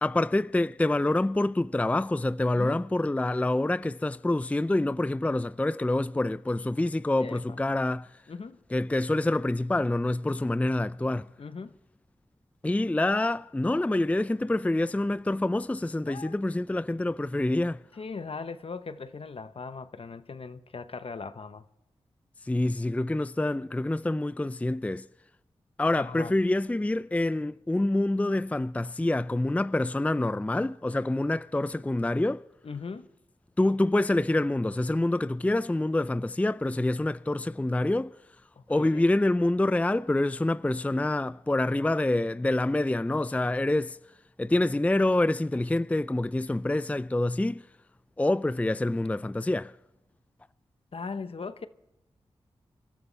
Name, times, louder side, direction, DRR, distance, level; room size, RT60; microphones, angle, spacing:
voice 1, 0.0-8.1 8.7-11.3 12.6-17.8 22.4-25.1 25.8-32.4 33.6-38.1 38.7-44.0 44.4-47.6 48.2-49.7, left 2 dB, 10° left, 0.4 m, -26 dB
voice 2, 7.2-7.6 8.3-8.6 11.4-11.7 16.1-16.3 17.9-21.6 26.0-26.3 32.6-33.1 38.6-39.1 50.9-51.7, left 4 dB, 60° left, 1.0 m, -39 dB
28.0 x 12.5 x 3.4 m
cardioid pair, 45°, 11 cm